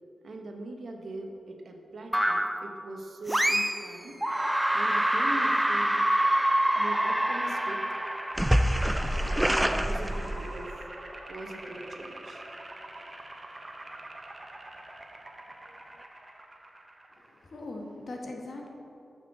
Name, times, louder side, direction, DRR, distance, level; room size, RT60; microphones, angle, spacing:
voice 1, 0.2-4.2 4.7-6.1 6.7-8.0 9.2-10.8 11.3-12.5, right 2 dB, 65° right, 3 dB, 1.0 m, -41 dB
sound 1, 2.1-2.7 3.3-3.9 4.2-10.7, right 1 dB, 10° right, 0.5 m, -26 dB
sound 2, 6.2-17.5, right 1 dB, 30° right, 0.9 m, -44 dB
voice 2, 17.1-18.7, left 2 dB, 60° left, 0 dB, 1.4 m, -40 dB
7.2 x 5.9 x 6.0 m, 2.9 s
cardioid pair, 55°, 0 cm